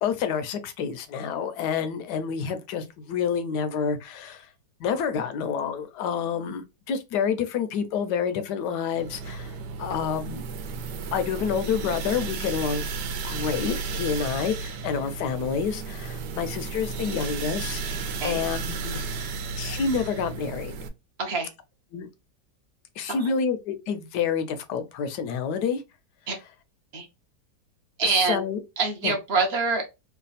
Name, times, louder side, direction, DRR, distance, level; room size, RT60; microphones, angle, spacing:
voice 1, 0.0-4.5 4.8-9.5 9.8-10.4 11.1-12.9 13.2-17.8 18.2-20.7 21.9-22.1 23.0-25.8 28.0-28.6 29.0-29.1, left 6 dB, 75° left, 1.1 m, -28 dB
sound 1, 8.9-20.9, right 4 dB, 75° right, 1.2 m, -33 dB
voice 2, 21.2-21.5 23.1-23.3 26.3-26.4 26.9-27.1 28.0-28.4 28.8-29.9, right 4 dB, 50° right, 0.8 m, -25 dB
3.2 x 2.3 x 3.9 m
omnidirectional pair, 1.9 m